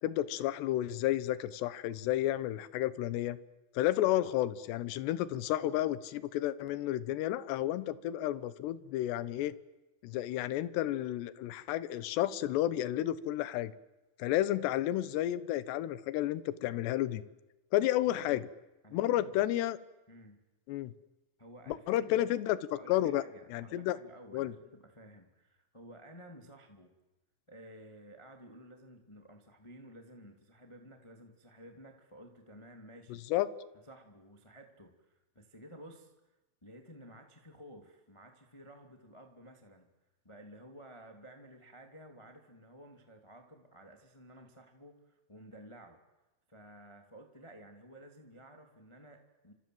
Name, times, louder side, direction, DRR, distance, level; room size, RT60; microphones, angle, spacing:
voice 1, 0.0-3.4 3.7-9.5 10.0-13.7 14.2-17.2 17.7-18.4 18.9-19.8 20.7-20.9 21.7-22.6 22.9-23.2 23.5-24.0 24.3-24.5 33.1-33.5, left 13 dB, 75° left, 16 dB, 2.8 m, -31 dB
voice 2, 18.1-18.4 18.8-19.5 20.1-20.4 21.4-22.3 22.7-26.9 27.5-33.2 33.9-36.1 36.6-39.9 40.2-46.0 46.5-49.5, right 1 dB, 30° left, 4 dB, 0.5 m, -54 dB
29.0 x 26.0 x 7.9 m, 1.1 s
omnidirectional pair, 5.8 m